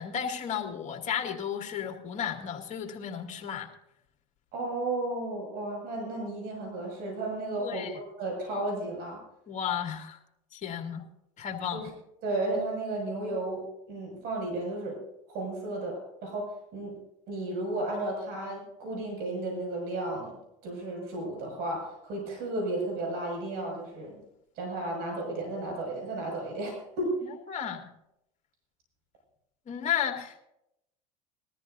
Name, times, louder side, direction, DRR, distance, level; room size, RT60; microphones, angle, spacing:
voice 1, 0.0-3.7 7.6-8.0 9.5-10.2 10.5-11.0 11.4-11.9 27.5-27.9 29.7-30.4, left 8 dB, 40° left, 2 dB, 2.3 m, -33 dB
voice 2, 4.5-7.9 8.2-9.2 11.7-11.9 12.2-15.0 15.3-16.9 17.3-20.4 20.6-24.2 24.6-27.1, right 2 dB, 65° right, 0 dB, 6.3 m, -33 dB
20.5 x 13.5 x 2.7 m, 0.82 s
supercardioid pair, 95°, 18 cm